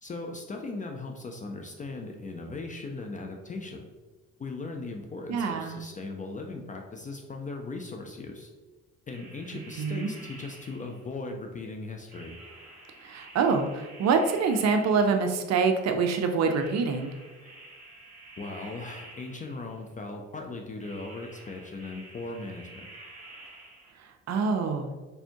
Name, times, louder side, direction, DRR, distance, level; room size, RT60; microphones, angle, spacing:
voice 1, 0.0-3.9 4.4-8.5 9.1-12.4 18.4-22.9, left 3 dB, 20° left, 2 dB, 0.4 m, -38 dB
voice 2, 5.3-5.8 9.8-10.1 13.0-17.1 24.0-24.9, right 5 dB, 40° right, 6 dB, 0.5 m, -26 dB
sound 1, 9.1-11.2 12.1-15.5 16.4-19.8 20.8-23.9, right 2 dB, 20° right, 1.4 m, -49 dB
4.2 x 3.4 x 2.8 m, 1.3 s
figure-of-eight pair, 45°, 42 cm